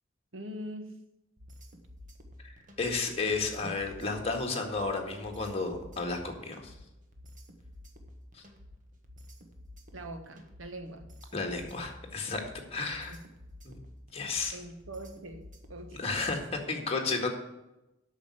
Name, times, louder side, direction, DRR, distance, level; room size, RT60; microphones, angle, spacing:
voice 1, 0.3-1.0 3.6-3.7 9.9-11.1 13.1-13.2 14.5-16.0, right 1 dB, 80° right, 6 dB, 1.4 m, -43 dB
sound 1, 1.4-16.6, left 1 dB, 40° right, 1.4 m, -51 dB
voice 2, 2.8-6.7 8.3-8.4 11.3-13.2 14.1-14.6 16.0-17.3, left 3 dB, 30° left, 2 dB, 1.8 m, -32 dB
8.6 x 6.4 x 8.3 m, 0.95 s
head